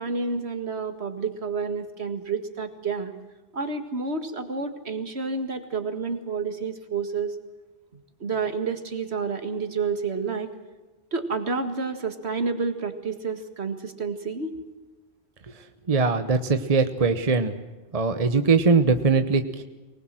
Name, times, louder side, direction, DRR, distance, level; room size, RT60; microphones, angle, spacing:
voice 1, 0.0-3.1 3.5-7.4 8.2-10.5 11.1-14.5, right 4 dB, 75° right, 8 dB, 2.2 m, -29 dB
voice 2, 15.9-17.5 17.9-19.6, right 4 dB, 35° right, 9 dB, 1.1 m, -21 dB
24.0 x 19.5 x 7.6 m, 1.2 s
omnidirectional pair, 1.1 m